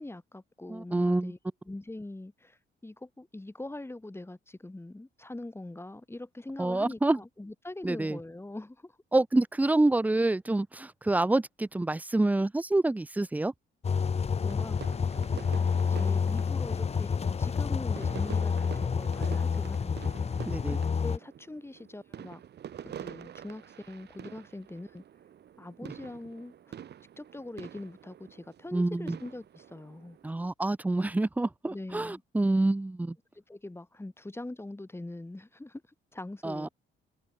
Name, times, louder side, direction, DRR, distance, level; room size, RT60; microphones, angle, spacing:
voice 1, 0.0-1.4 1.7-9.0 14.4-20.0 20.7-22.4 22.8-25.0 25.6-26.8 27.2-30.2 31.7-32.2 33.4-35.8 36.1-36.7, left 2 dB, 10° left, 3.5 m, -43 dB
voice 2, 0.7-1.3 6.6-7.2 7.8-8.2 9.1-13.5 20.4-20.8 28.7-29.2 30.2-33.2 36.4-36.7, right 2 dB, 10° right, 0.4 m, -27 dB
sound 1, 13.8-21.2, left 6 dB, 30° left, 0.8 m, -29 dB
sound 2, 14.5-30.3, right 9 dB, 55° right, 1.3 m, -47 dB
cardioid pair, 90°, 20 cm